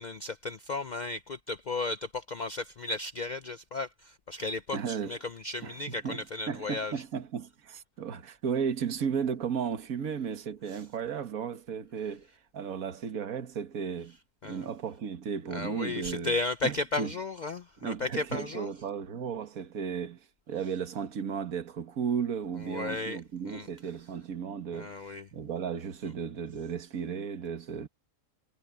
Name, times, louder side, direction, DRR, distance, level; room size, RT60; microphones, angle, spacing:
voice 1, 0.0-6.9 10.7-10.8 14.4-14.7 15.5-18.7 22.6-23.2 23.5-23.7 24.7-25.3, left 3 dB, 60° left, 0.4 m, -34 dB
voice 2, 4.7-5.2 5.6-12.3 12.5-14.2 14.4-16.4 16.6-17.1 17.8-27.9, right 7 dB, 60° right, 1.9 m, -34 dB
omnidirectional pair, 1.7 m